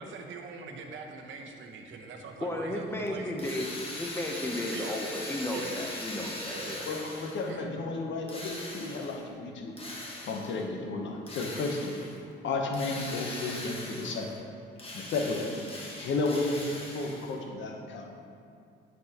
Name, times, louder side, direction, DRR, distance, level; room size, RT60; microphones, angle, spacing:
voice 1, 0.0-3.3 4.7-5.0 5.5-5.9 6.5-6.8 7.4-7.6, right 4 dB, 75° right, 3 dB, 0.8 m, -42 dB
voice 2, 2.4-6.9, left 1 dB, 10° left, 1 dB, 0.8 m, -34 dB
Drill, 3.4-7.5 8.3-9.2 9.8-10.6 11.3-12.2 12.7-14.4 14.7-17.4, left 1 dB, 30° left, 1.4 m, -40 dB
voice 3, 6.9-9.7 10.2-11.9 12.4-14.3 14.9-15.4 16.0-18.2, left 3 dB, 70° left, 2 dB, 0.9 m, -33 dB
9.7 x 4.4 x 2.9 m, 2.5 s
cardioid pair, 90°, 20 cm